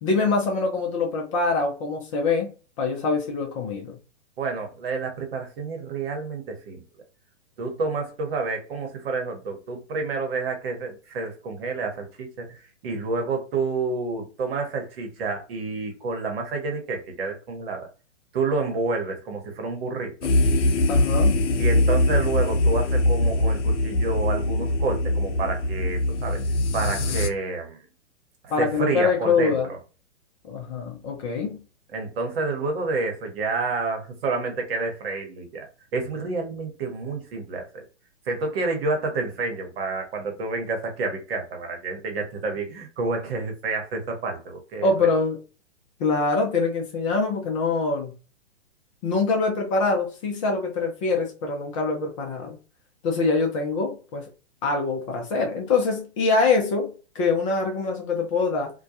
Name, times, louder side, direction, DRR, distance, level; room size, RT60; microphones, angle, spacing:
voice 1, 0.0-2.5 2.8-4.0 20.9-21.3 28.5-29.7 30.4-31.6 44.8-45.4 46.0-48.1 49.0-52.5 53.0-54.3 54.6-58.7, left 4 dB, 30° left, 0.5 m, -24 dB
voice 2, 4.4-6.8 7.6-17.9 18.3-20.1 21.6-26.4 26.7-27.9 28.4-29.8 31.9-35.7 35.9-37.8 38.3-45.1, right 3 dB, 55° right, 1.0 m, -29 dB
sound 1, 20.2-27.3, left 1 dB, 70° left, 0.6 m, -22 dB
2.2 x 2.2 x 2.7 m
hypercardioid pair, 120°, 36 cm